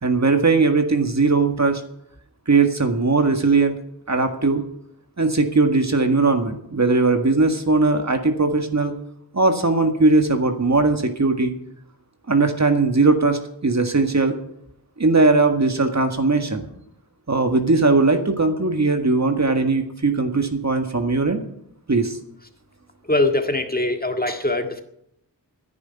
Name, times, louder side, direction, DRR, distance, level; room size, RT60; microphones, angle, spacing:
voice 1, 0.0-1.8 2.5-3.8 4.1-4.6 5.2-8.9 9.3-11.5 12.3-14.4 15.0-16.7 17.3-21.5 21.9-22.2, right 3 dB, 40° right, 6 dB, 1.9 m, -19 dB
voice 2, 23.0-24.8, left 2 dB, 20° left, 5 dB, 1.8 m, -22 dB
10.5 x 9.6 x 9.4 m, 0.77 s
cardioid pair, 50°, 40 cm